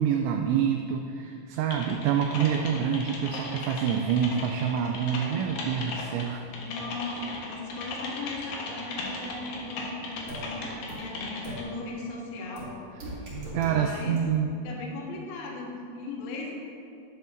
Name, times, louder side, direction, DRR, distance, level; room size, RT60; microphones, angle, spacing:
voice 1, 0.0-6.5 13.5-14.5, right 8 dB, 85° right, 3 dB, 2.7 m, -27 dB
Typing, 1.7-11.6, left 3 dB, 85° left, 1.9 m, -37 dB
voice 2, 6.6-12.7 13.7-14.2 14.6-16.5, left 3 dB, 70° left, -2 dB, 2.7 m, -38 dB
sound 1, 10.3-10.4 10.9-11.0 11.4-11.5 12.6-12.7 13.0-13.7 14.2-14.3, right 2 dB, 40° right, 2.6 m, -38 dB
12.0 x 10.0 x 2.6 m, 2.6 s
omnidirectional pair, 5.7 m